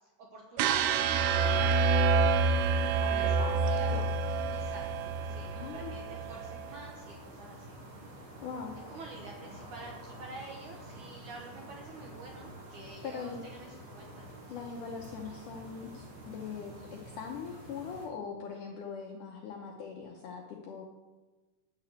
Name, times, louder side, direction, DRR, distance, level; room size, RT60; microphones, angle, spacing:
voice 1, 0.2-2.6 3.1-7.8 8.9-14.3, right 2 dB, 70° right, 0 dB, 1.9 m, -48 dB
sound 1, 0.6-6.7, right 4 dB, 85° right, 2.8 m, -28 dB
sound 2, 1.4-18.1, right 1 dB, 55° right, 4.0 m, -48 dB
voice 2, 3.0-3.6 3.9-4.1 5.5-5.9 8.4-8.8 12.8-13.4 14.5-20.9, left 6 dB, 80° left, 1 dB, 1.8 m, -41 dB
11.0 x 5.1 x 8.2 m, 1.2 s
omnidirectional pair, 4.8 m